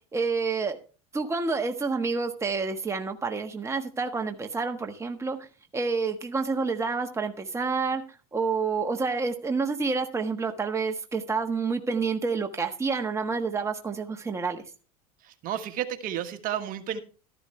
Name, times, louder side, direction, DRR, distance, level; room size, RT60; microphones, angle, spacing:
voice 1, 0.1-0.8 1.1-5.5 5.7-8.0 8.3-14.6, right 4 dB, 15° right, 5 dB, 1.4 m, -28 dB
voice 2, 15.4-17.0, right 10 dB, 50° right, 8 dB, 1.4 m, -31 dB
13.0 x 11.5 x 3.2 m, 0.35 s
supercardioid pair, 100°, 18 cm